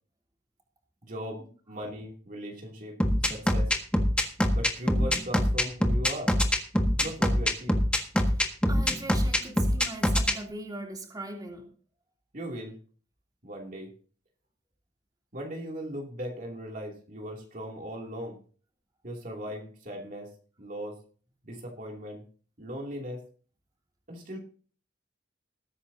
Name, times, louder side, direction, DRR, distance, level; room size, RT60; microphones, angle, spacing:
voice 1, 1.0-3.0 3.3-3.7 4.5-6.3 7.0-7.8 12.3-12.8 13.4-13.9 15.3-18.4 19.0-20.3 20.6-21.0 21.4-22.2 22.6-23.2 24.1-24.4, equal, 50° right, 0 dB, 2.8 m, -38 dB
sound 1, 3.0-10.3, equal, 5° left, 1.6 m, -23 dB
voice 2, 8.7-11.7, right 2 dB, 20° right, 0 dB, 3.1 m, -40 dB
20.0 x 9.8 x 2.8 m, 0.41 s
head